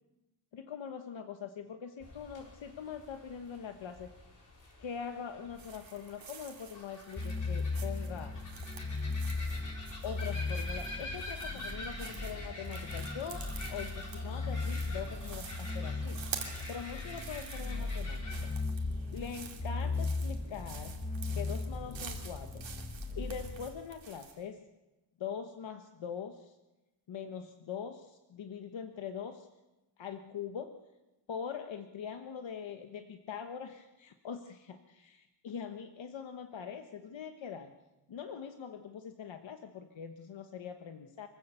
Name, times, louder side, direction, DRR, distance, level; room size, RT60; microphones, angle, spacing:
voice 1, 0.5-4.1 4.8-8.3 10.0-16.2 16.7-18.5 19.1-21.0 21.3-22.7 23.2-24.6 25.2-26.5 27.1-29.5 30.0-30.7 31.3-37.7 38.1-41.3, left 7 dB, 80° left, 6 dB, 1.3 m, -43 dB
sound 1, 2.0-18.5, left 1 dB, 40° left, 5.3 m, -47 dB
sound 2, 5.5-24.4, right 7 dB, 90° right, 2.6 m, -49 dB
sound 3, 7.2-23.7, left 3 dB, 15° left, 1.4 m, -37 dB
24.5 x 16.0 x 6.9 m, 1.0 s
wide cardioid pair, 175°, 45 cm